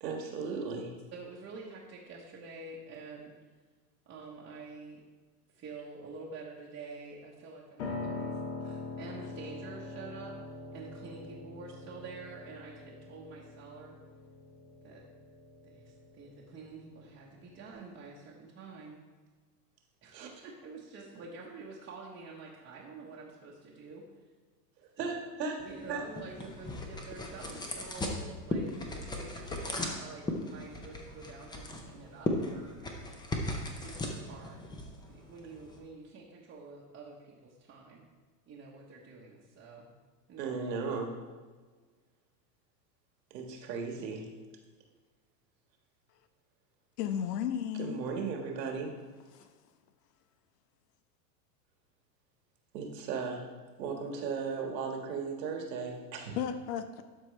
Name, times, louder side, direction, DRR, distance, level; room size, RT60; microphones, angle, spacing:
voice 1, 0.0-1.0 20.1-20.4 25.0-26.0 40.4-41.2 43.3-44.3 47.8-49.0 52.7-53.5 53.8-56.4, right 5 dB, 80° right, 2 dB, 1.6 m, -36 dB
voice 2, 1.1-3.3 4.1-5.0 5.5-10.3 10.7-14.0 14.8-15.0 15.6-19.0 20.0-24.0 25.0-25.1 25.6-33.1 33.8-34.6 35.1-38.0 38.5-39.8 40.3-40.6, right 4 dB, 25° right, -5 dB, 1.0 m, -48 dB
Piano, 7.8-17.7, left 3 dB, 60° left, 1.6 m, -43 dB
sound 1, 25.6-35.8, left 1 dB, 10° left, 0.6 m, -38 dB
voice 3, 47.0-48.1 49.3-49.5 56.4-57.0, left 9 dB, 75° left, 10 dB, 0.7 m, -34 dB
12.0 x 4.6 x 3.2 m, 1.4 s
hypercardioid pair, 125°, 49 cm